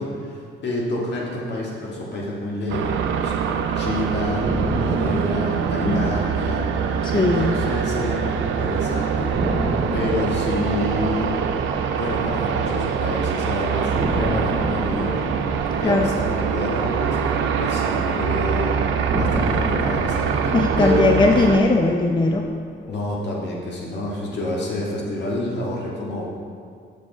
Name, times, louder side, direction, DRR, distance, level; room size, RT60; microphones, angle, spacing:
voice 1, 0.0-4.5 4.8-6.6 7.1-11.3 12.0-15.3 15.8-17.2 17.6-18.8 19.1-21.1 22.9-26.2, left 1 dB, 60° left, -4 dB, 1.7 m, -28 dB
sound 1, 2.7-21.6, right 7 dB, 75° right, 0.5 m, -24 dB
sound 2, 4.4-8.5 8.8-8.9 9.3-13.4 14.0-18.3 19.1-23.4, right 1 dB, 40° right, 1.5 m, -31 dB
voice 2, 7.0-7.5 15.8-16.1 20.5-22.5 22.8-22.9, left 3 dB, 25° left, 2 dB, 0.5 m, -19 dB
6.4 x 6.2 x 3.9 m, 2.1 s
cardioid pair, 90°, 20 cm